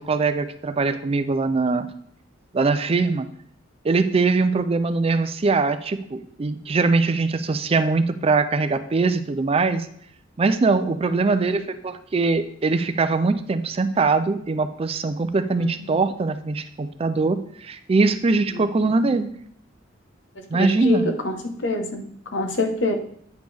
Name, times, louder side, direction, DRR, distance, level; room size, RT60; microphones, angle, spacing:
voice 1, 0.0-1.9 2.5-3.3 3.8-9.9 10.4-19.3 20.5-21.1, right 3 dB, 30° right, 11 dB, 0.4 m, -22 dB
voice 2, 11.1-11.4 15.6-15.9 18.6-18.7 20.4-23.0, left 2 dB, 70° left, 4 dB, 1.1 m, -26 dB
9.1 x 5.2 x 3.4 m, 0.66 s
head